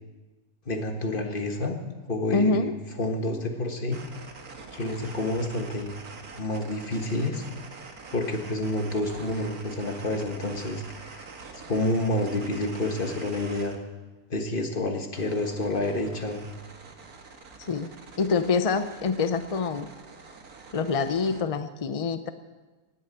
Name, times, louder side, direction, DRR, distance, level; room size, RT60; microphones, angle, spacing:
voice 1, 0.6-1.8 2.1-2.7 3.0-4.0 4.7-5.9 6.3-7.4 8.1-11.2 11.7-13.7 14.3-16.4, left 2 dB, 35° left, 4 dB, 1.7 m, -29 dB
voice 2, 2.3-2.7 17.7-17.9 18.2-19.9 20.7-22.3, left 4 dB, 55° left, 10 dB, 0.3 m, -25 dB
sound 1, 3.9-13.8 15.1-21.4, right 4 dB, 70° right, 2.0 m, -45 dB
19.0 x 8.9 x 8.0 m, 1.3 s
omnidirectional pair, 1.6 m